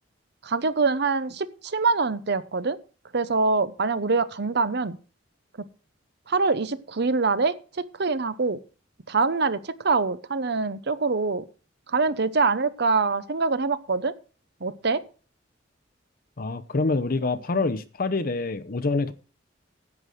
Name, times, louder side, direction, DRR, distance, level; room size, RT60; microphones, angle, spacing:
voice 1, 0.4-2.8 3.1-5.0 6.3-8.6 9.1-11.5 11.9-14.1 14.6-15.0, right 4 dB, 60° right, 0.8 m, -24 dB
voice 2, 16.4-19.1, left 3 dB, 50° left, 0.7 m, -26 dB
10.5 x 7.9 x 6.5 m
head